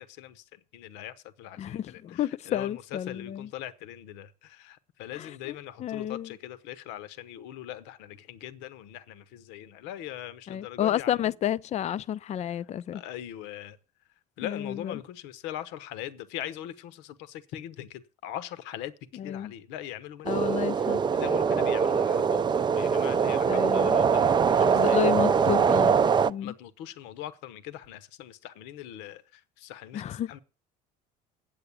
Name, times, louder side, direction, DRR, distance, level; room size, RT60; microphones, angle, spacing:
voice 1, 0.0-11.3 12.3-13.8 14.4-25.1 26.4-30.4, left 12 dB, 75° left, 1.0 m, -41 dB
voice 2, 1.6-3.5 5.2-5.5 5.8-6.3 10.5-13.0 14.4-15.0 19.2-19.5 20.3-21.0 23.5-24.0 24.7-26.0 26.3-26.5 29.9-30.4, left 10 dB, 40° left, 0.5 m, -31 dB
sound 1, 20.3-26.3, right 6 dB, 25° right, 0.5 m, -23 dB
8.8 x 7.9 x 8.3 m
supercardioid pair, 100°, 19 cm